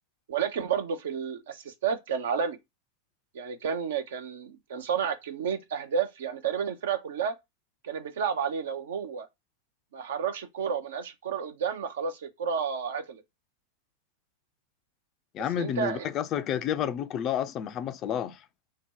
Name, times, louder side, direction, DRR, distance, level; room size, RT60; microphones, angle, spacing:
voice 1, 0.3-2.6 3.3-7.3 7.8-9.3 9.9-13.2 15.6-16.1, right 7 dB, 60° right, 0.6 m, -31 dB
voice 2, 15.3-18.4, left 9 dB, 35° left, 0.4 m, -30 dB
2.8 x 2.1 x 3.6 m
figure-of-eight pair, 90°, 0 cm